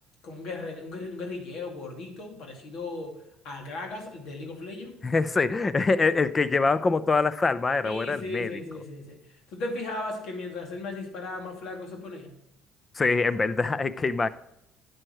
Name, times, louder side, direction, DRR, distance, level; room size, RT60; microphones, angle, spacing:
voice 1, 0.2-3.2 3.4-4.9 7.8-9.2 9.5-12.4, left 2 dB, 70° left, 2 dB, 2.5 m, -36 dB
voice 2, 5.0-8.6 12.9-14.3, left 4 dB, 30° left, 16 dB, 0.6 m, -24 dB
11.0 x 7.8 x 3.1 m, 0.82 s
supercardioid pair, 75°, 0 cm